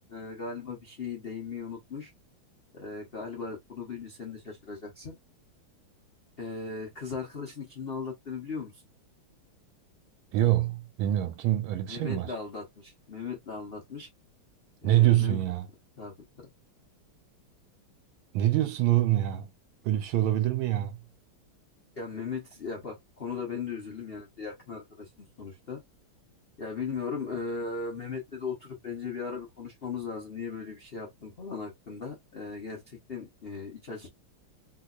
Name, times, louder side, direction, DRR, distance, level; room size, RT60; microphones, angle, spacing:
voice 1, 0.0-2.1 2.7-5.2 6.4-8.8 11.9-14.1 14.8-15.4 16.0-16.5 22.0-25.1 25.4-25.8 26.6-34.1, left 5 dB, 70° left, 0.5 m, -38 dB
voice 2, 10.3-12.3 14.8-15.7 18.3-19.5 19.8-21.0, right 14 dB, 80° right, 1.4 m, -25 dB
3.3 x 2.8 x 2.4 m
omnidirectional pair, 2.4 m